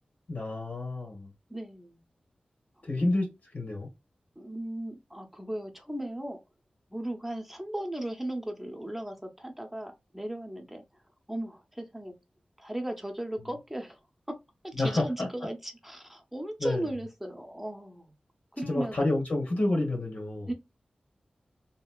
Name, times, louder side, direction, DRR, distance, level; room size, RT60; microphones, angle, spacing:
voice 1, 0.3-1.3 2.8-3.9 14.8-15.3 16.6-16.8 18.6-20.5, left 2 dB, 70° left, 1.3 m, -29 dB
voice 2, 1.5-2.0 2.8-2.9 4.4-6.4 6.9-10.8 11.3-12.1 12.6-14.0 14.6-18.1 18.5-19.1 20.5-20.6, right 1 dB, 5° right, 0.8 m, -36 dB
3.0 x 2.7 x 2.4 m
wide cardioid pair, 65°, 3 cm